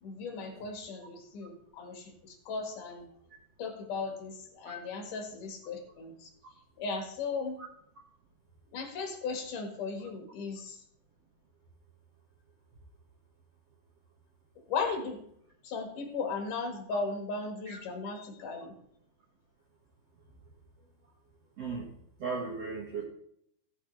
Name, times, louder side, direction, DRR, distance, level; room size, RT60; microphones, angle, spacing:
voice 1, 0.0-3.1 3.6-6.3 6.8-7.6 8.7-10.8 14.7-15.3 15.6-18.7, left 4 dB, 60° left, 3 dB, 3.1 m, -36 dB
voice 2, 21.6-21.9 22.2-23.0, right 4 dB, 50° right, -5 dB, 2.5 m, -36 dB
18.0 x 6.4 x 3.3 m, 0.71 s
omnidirectional pair, 4.6 m